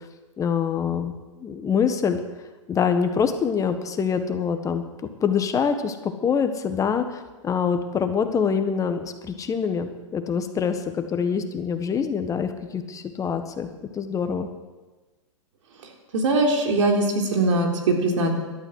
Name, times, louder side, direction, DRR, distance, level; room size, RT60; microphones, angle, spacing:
voice 1, 0.4-2.2 2.7-4.8 5.2-13.7 13.9-14.5, left 6 dB, 20° left, 8 dB, 1.5 m, -25 dB
voice 2, 16.1-18.3, right 2 dB, 75° right, 2 dB, 3.8 m, -21 dB
17.0 x 12.5 x 6.5 m, 1.2 s
hypercardioid pair, 125°, 16 cm